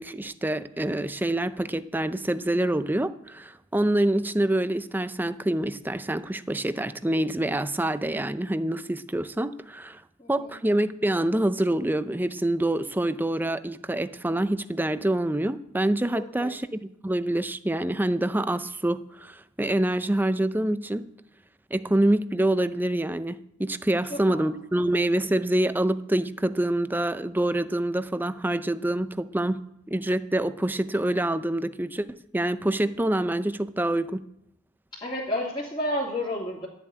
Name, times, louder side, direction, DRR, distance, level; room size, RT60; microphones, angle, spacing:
voice 1, 0.0-10.0 10.3-21.1 21.7-29.6 29.9-34.2, right 1 dB, 10° right, 12 dB, 0.5 m, -26 dB
voice 2, 10.2-10.5 16.4-16.5 24.1-24.5 34.9-36.7, left 1 dB, 20° left, -7 dB, 2.5 m, -31 dB
13.0 x 7.2 x 9.6 m, 0.78 s
head